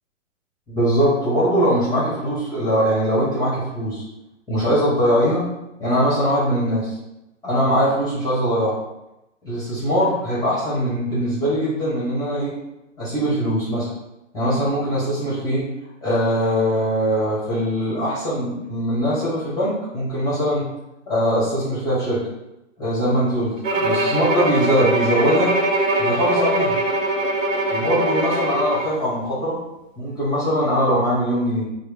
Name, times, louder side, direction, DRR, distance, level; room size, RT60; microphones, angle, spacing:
voice 1, 0.7-4.0 4.5-5.5 5.8-7.0 7.4-8.7 9.4-12.5 13.0-13.9 14.3-15.7 16.0-20.7 21.1-22.2 22.8-25.5 26.0-26.8 27.7-29.6 30.0-31.7, equal, 10° left, -9 dB, 1.1 m, -21 dB
Bowed string instrument, 23.6-29.0, right 1 dB, 80° right, 0.8 m, -22 dB
4.6 x 2.1 x 3.4 m, 0.91 s
hypercardioid pair, 135°, 38 cm